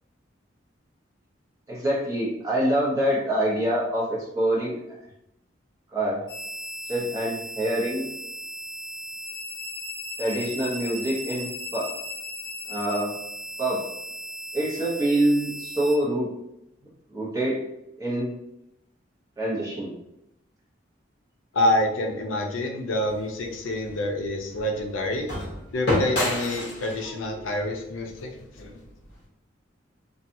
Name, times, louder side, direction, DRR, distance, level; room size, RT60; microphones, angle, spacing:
voice 1, 1.7-4.8 5.9-6.2 6.9-8.1 10.2-11.9 12.7-13.1 13.6-13.9 14.5-16.3 17.1-17.6 18.0-18.3 19.4-19.9, right 1 dB, 15° right, -6 dB, 0.7 m, -25 dB
sound 1, 6.3-15.9, left 1 dB, 20° left, 0.8 m, -37 dB
voice 2, 21.5-25.3 25.7-28.8, left 1 dB, 85° left, 2 dB, 0.5 m, -27 dB
sound 2, 23.1-29.2, left 1 dB, 60° left, 0.8 m, -31 dB
2.7 x 2.3 x 2.5 m, 0.85 s
head